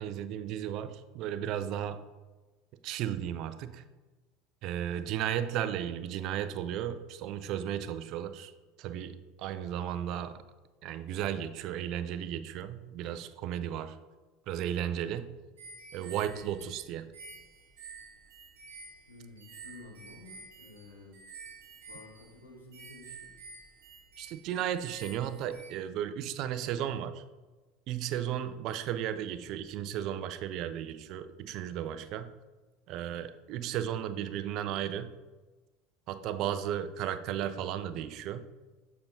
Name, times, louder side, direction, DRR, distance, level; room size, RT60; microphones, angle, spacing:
voice 1, 0.0-2.0 2.8-3.8 4.6-8.5 8.8-10.4 10.8-14.0 14.5-15.3 15.9-17.2 24.2-27.2 27.9-32.3 32.9-35.1 36.1-38.5, right 10 dB, 50° right, 11 dB, 0.4 m, -34 dB
voice 2, 4.9-5.3 19.1-21.2 21.9-23.3, left 2 dB, 90° left, -1 dB, 1.3 m, -52 dB
sound 1, 15.6-25.7, right 4 dB, 70° right, 1.2 m, -50 dB
6.9 x 5.3 x 2.7 m, 1.2 s
hypercardioid pair, 75°, 0 cm